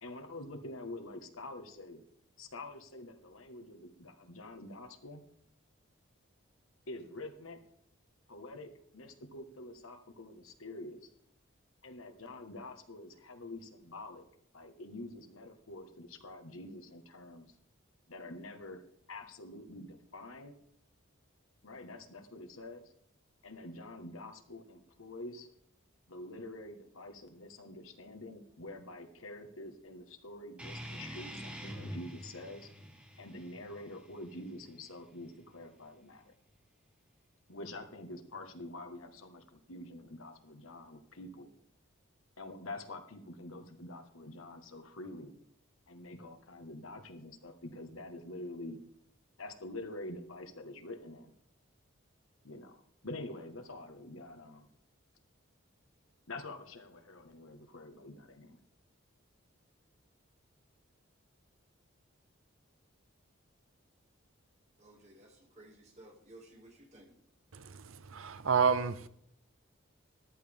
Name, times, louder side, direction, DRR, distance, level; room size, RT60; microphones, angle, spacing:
voice 1, 0.0-2.0 2.4-5.2 6.9-7.6 8.3-11.1 11.8-14.3 14.5-17.5 18.1-18.8 19.1-20.6 21.6-22.9 23.4-25.5 26.1-32.7 33.2-36.3 37.5-41.5 42.4-45.4 45.9-48.8 49.4-51.3 52.4-54.7 56.3-58.6, left 2 dB, 80° left, 1.5 m, -46 dB
sound 1, 30.6-35.6, equal, 5° right, 1.3 m, -47 dB
voice 2, 64.8-67.1, right 1 dB, 30° right, 2.4 m, -56 dB
voice 3, 67.5-69.1, right 6 dB, 75° right, 0.7 m, -30 dB
14.0 x 12.0 x 3.6 m
head